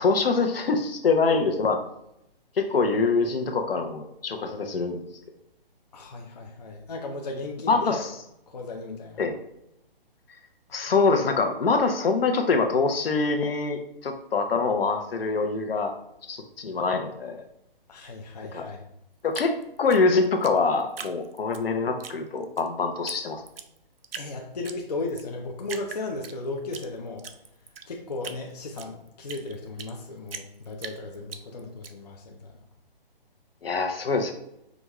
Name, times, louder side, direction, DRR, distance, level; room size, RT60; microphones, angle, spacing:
voice 1, 0.0-1.8 2.6-5.0 7.7-8.1 9.2-9.3 10.7-15.9 16.3-17.5 18.5-18.6 19.2-23.4 33.6-34.3, left 4 dB, 75° left, 5 dB, 0.8 m, -24 dB
voice 2, 5.9-8.0 8.5-9.2 10.7-10.8 17.9-18.8 24.2-27.3 27.9-32.5, left 2 dB, 45° left, 1 dB, 0.5 m, -35 dB
Drip, 19.3-21.6 22.0-22.7 23.1-23.2 23.5-24.3 24.6-25.3 25.6-26.9 27.2-30.0 30.3-31.9, right 6 dB, 75° right, 0.5 m, -40 dB
5.1 x 2.4 x 3.0 m, 0.81 s
hypercardioid pair, 175°, 30 cm